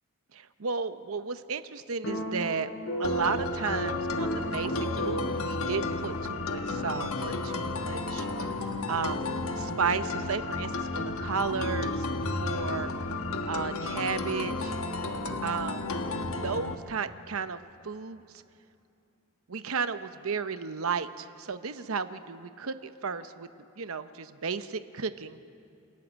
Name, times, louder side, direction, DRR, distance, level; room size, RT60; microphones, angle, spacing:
voice 1, 0.3-2.7 3.0-8.3 8.9-12.1 12.4-12.9 13.5-14.7 15.4-16.0 16.4-18.2 19.5-23.5 23.8-25.4, right 5 dB, 80° right, 11 dB, 0.8 m, -33 dB
sound 1, 2.0-6.5, equal, 60° left, 4.7 m, -34 dB
sound 2, 3.0-16.8, left 3 dB, 80° left, 1.3 m, -33 dB
sound 3, 12.2-14.0, left 1 dB, 5° right, 1.2 m, -39 dB
29.0 x 14.0 x 9.0 m, 2.8 s
head